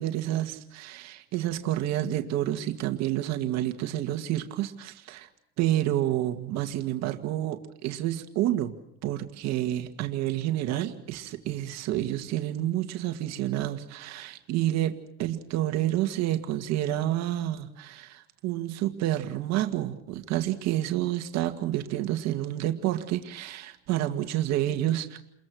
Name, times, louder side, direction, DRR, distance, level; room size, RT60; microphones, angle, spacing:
voice 1, 0.0-5.3 5.6-8.7 9.0-25.2, right 13 dB, 50° right, 6 dB, 2.0 m, -29 dB
29.5 x 22.0 x 6.4 m, 0.80 s
cardioid pair, 145°, 33 cm